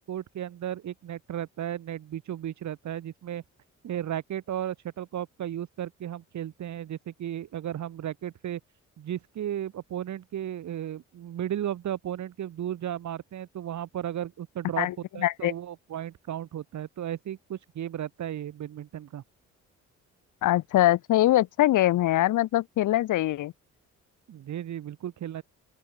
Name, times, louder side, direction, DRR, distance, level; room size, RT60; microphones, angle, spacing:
voice 1, 0.0-3.4 3.8-8.6 9.0-14.9 15.1-19.2 24.3-25.4, right 11 dB, 70° right, 6.5 m, -34 dB
voice 2, 14.8-15.5 20.4-23.5, left 14 dB, 85° left, 6.0 m, -23 dB
open air
cardioid pair, 90°, 30 cm